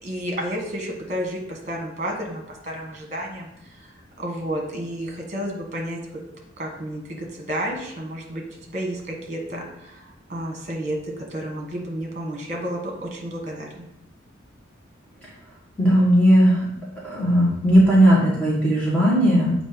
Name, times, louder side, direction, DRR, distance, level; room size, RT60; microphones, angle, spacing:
voice 1, 0.0-6.0 6.6-8.4 8.7-13.9, equal, 40° right, 1 dB, 1.3 m, -31 dB
voice 2, 15.8-16.6 17.1-19.5, equal, 5° left, -7 dB, 1.4 m, -17 dB
7.6 x 2.6 x 5.1 m, 0.82 s
head